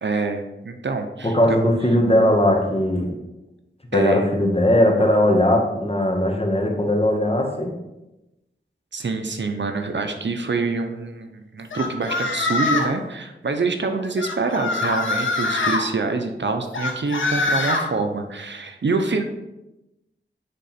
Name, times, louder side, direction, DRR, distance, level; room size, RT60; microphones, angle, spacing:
voice 1, 0.0-1.6 3.9-4.3 8.9-19.2, right 3 dB, 65° right, 5 dB, 0.8 m, -26 dB
voice 2, 1.2-3.1 3.9-7.7, left 1 dB, 30° left, 1 dB, 1.6 m, -19 dB
sound 1, 11.7-13.0 14.2-15.8 16.7-17.8, left 3 dB, 90° left, 0.9 m, -23 dB
8.8 x 3.8 x 4.3 m, 0.95 s
cardioid pair, 45°, 20 cm